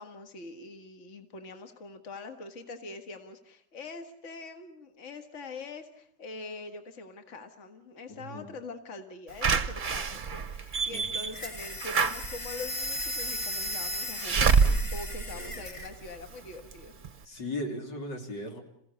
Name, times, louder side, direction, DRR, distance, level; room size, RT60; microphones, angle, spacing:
voice 1, 0.0-16.9, left 3 dB, 45° left, 6 dB, 1.9 m, -43 dB
voice 2, 8.1-8.5 10.9-11.2 15.3-15.6 17.2-18.6, left 1 dB, 85° left, 2 dB, 3.8 m, -38 dB
Slam / Alarm, 9.4-16.2 16.7-16.8 17.0-17.1, right 5 dB, 35° right, 0.9 m, -28 dB
sound 1, 11.3-15.9, equal, 20° left, 1.4 m, -36 dB
27.5 x 16.0 x 8.3 m, 0.73 s
omnidirectional pair, 1.8 m